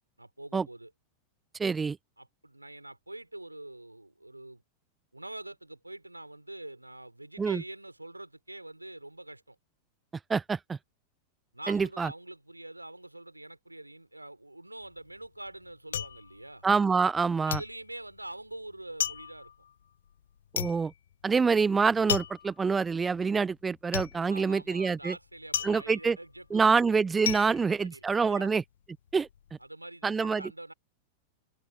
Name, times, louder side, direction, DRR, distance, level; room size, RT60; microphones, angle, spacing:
voice 1, 0.2-0.9 2.2-4.6 5.1-9.6 11.5-16.6 17.4-19.5 24.2-26.8 27.3-28.5 29.6-30.7, right 1 dB, 85° right, 4.0 m, -45 dB
voice 2, 1.6-2.0 7.4-7.6 10.3-10.8 11.7-12.1 16.6-17.6 20.5-20.9 21.2-25.1 25.6-26.2 26.5-28.6 29.1-29.3 30.0-30.4, right 5 dB, 15° right, 0.4 m, -26 dB
sound 1, 14.8-17.2 17.5-28.6 28.9-29.5, left 9 dB, 65° left, 1.2 m, -36 dB
open air
figure-of-eight pair, 90°, 0 cm